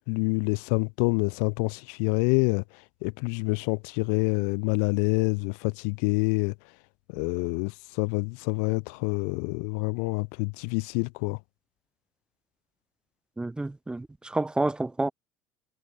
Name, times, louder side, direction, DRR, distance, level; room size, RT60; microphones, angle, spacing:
voice 1, 0.1-2.6 3.0-6.5 7.1-11.4, left 36 dB, 60° left, 0.5 m, -27 dB
voice 2, 13.4-15.1, right 2 dB, 10° right, 0.6 m, -29 dB
figure-of-eight pair, 65°, 9 cm